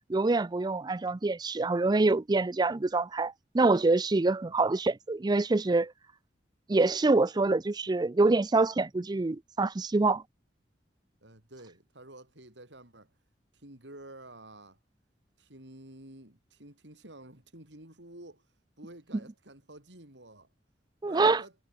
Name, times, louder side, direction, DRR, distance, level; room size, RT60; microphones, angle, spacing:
voice 1, 0.1-5.9 6.7-10.2 21.0-21.4, right 3 dB, 25° right, 0.4 m, -25 dB
voice 2, 11.2-13.1 13.5-14.8 15.4-18.5 18.8-20.5 21.0-21.5, right 1 dB, 85° right, 7.8 m, -50 dB
head